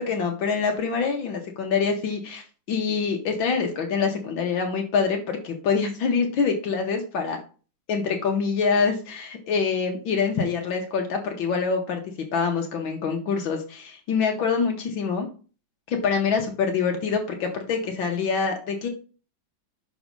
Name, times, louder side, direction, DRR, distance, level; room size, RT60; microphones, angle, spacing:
voice 1, 0.1-7.4 7.9-12.0 12.3-15.3 15.9-18.9, left 5 dB, 75° left, 3 dB, 1.7 m, -25 dB
6.3 x 3.9 x 5.2 m, 0.37 s
omnidirectional pair, 2.1 m